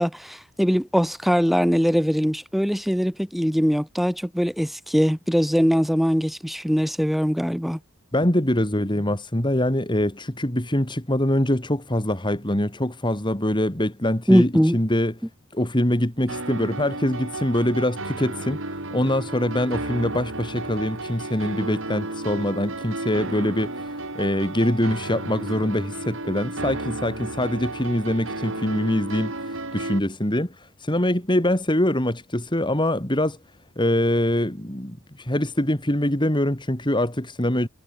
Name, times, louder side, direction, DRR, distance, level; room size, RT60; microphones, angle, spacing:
voice 1, 0.0-7.8 14.3-14.8, equal, ahead, 3.1 m, -21 dB
voice 2, 8.1-15.1 15.5-33.4 33.8-37.7, left 1 dB, 20° left, 3.1 m, -24 dB
sound 1, 16.3-30.0, right 2 dB, 60° right, 7.2 m, -33 dB
head